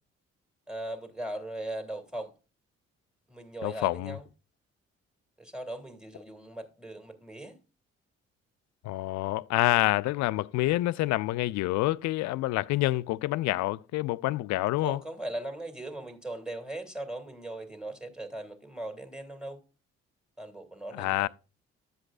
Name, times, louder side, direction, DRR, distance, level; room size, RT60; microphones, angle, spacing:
voice 1, 0.7-2.3 3.3-4.3 5.4-7.6 9.6-9.8 14.8-19.6 20.4-21.3, right 1 dB, ahead, 2.1 m, -39 dB
voice 2, 3.6-4.1 8.8-15.0 21.0-21.3, left 17 dB, 55° left, 0.4 m, -27 dB
10.5 x 7.8 x 2.4 m
hypercardioid pair, 45°, 33 cm